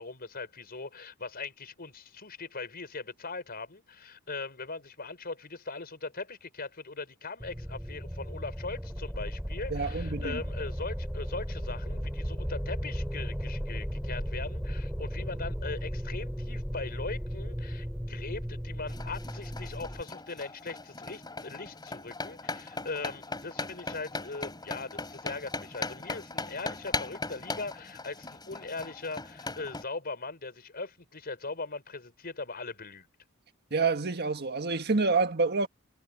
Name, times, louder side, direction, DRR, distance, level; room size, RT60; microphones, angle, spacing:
voice 1, 0.0-33.1, left 3 dB, 50° left, 5.3 m, -40 dB
sound 1, 7.4-20.0, equal, 5° right, 5.0 m, -35 dB
voice 2, 9.7-10.4 33.7-35.7, right 4 dB, 50° right, 1.7 m, -27 dB
sound 2, 18.9-29.8, left 3 dB, 20° left, 3.7 m, -39 dB
head